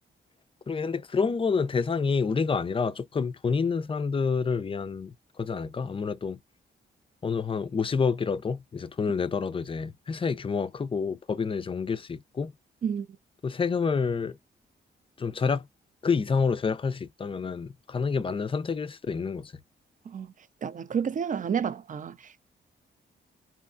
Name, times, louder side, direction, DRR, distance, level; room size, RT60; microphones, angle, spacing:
voice 1, 0.7-6.4 7.2-12.5 13.4-14.4 15.2-15.7 16.0-19.5, left 5 dB, 25° left, 0.3 m, -28 dB
voice 2, 20.6-22.5, right 7 dB, 40° right, 0.4 m, -30 dB
2.8 x 2.3 x 2.4 m
cardioid pair, 75°, 20 cm